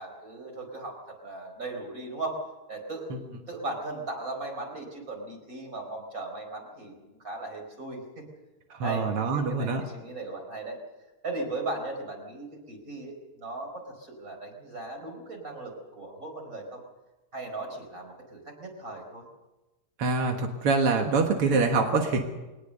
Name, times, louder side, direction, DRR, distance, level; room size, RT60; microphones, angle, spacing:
voice 1, 0.0-8.2 8.8-10.8 11.2-16.8 17.3-19.3, right 2 dB, 35° right, 3 dB, 5.1 m, -37 dB
voice 2, 8.7-9.8 20.0-22.2, right 4 dB, 85° right, 3 dB, 2.5 m, -25 dB
22.5 x 19.0 x 6.7 m, 1.1 s
omnidirectional pair, 2.4 m